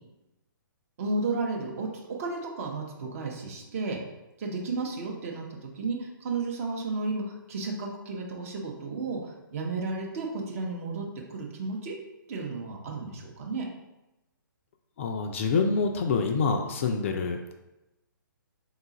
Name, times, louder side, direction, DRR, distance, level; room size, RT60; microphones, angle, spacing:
voice 1, 1.0-4.0 4.4-12.0 12.3-13.7, right 3 dB, 40° right, 1 dB, 0.8 m, -33 dB
voice 2, 15.0-17.5, left 4 dB, 35° left, 4 dB, 0.3 m, -26 dB
3.8 x 2.3 x 4.0 m, 0.96 s
figure-of-eight pair, 130°, 11 cm